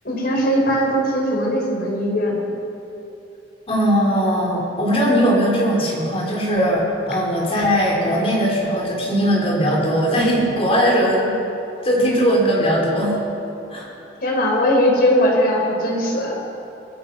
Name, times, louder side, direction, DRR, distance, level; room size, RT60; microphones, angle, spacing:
voice 1, 0.0-2.4 14.2-16.3, equal, 50° left, -1 dB, 5.4 m, -19 dB
voice 2, 3.7-11.3 11.8-13.2 13.7-13.9, equal, 30° left, -3 dB, 5.3 m, -19 dB
23.5 x 20.0 x 6.0 m, 2.9 s
head